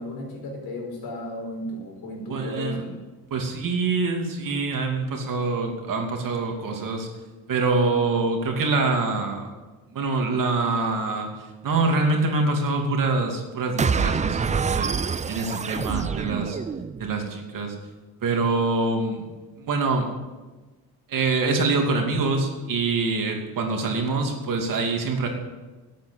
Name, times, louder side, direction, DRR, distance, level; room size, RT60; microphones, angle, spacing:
voice 1, 0.0-3.0, left 1 dB, 85° left, 0 dB, 4.9 m, -34 dB
voice 2, 2.3-2.8 3.3-7.1 7.5-9.5 9.9-11.3 11.6-14.9 15.3-16.6 17.0-17.7 18.2-19.2 19.6-20.1 21.1-25.3, right 3 dB, 60° right, 2 dB, 2.8 m, -25 dB
sound 1, 13.8-17.1, right 5 dB, 20° right, 0.4 m, -26 dB
12.5 x 8.6 x 8.4 m, 1.2 s
cardioid pair, 115°, 36 cm